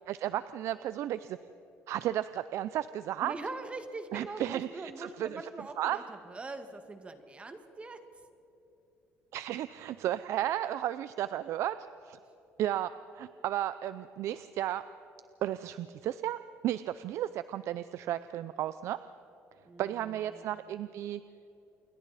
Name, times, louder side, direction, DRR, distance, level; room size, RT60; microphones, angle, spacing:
voice 1, 0.1-1.4 1.9-3.3 4.1-5.4 5.8-6.0 9.3-11.8 12.0-12.2 12.6-14.8 15.4-19.0 19.8-21.2, right 12 dB, 70° right, 13 dB, 0.5 m, -33 dB
voice 2, 3.2-8.0 19.6-20.8, right 3 dB, 25° right, 7 dB, 1.8 m, -43 dB
28.5 x 22.5 x 4.2 m, 3.0 s
cardioid pair, 120°, 5 cm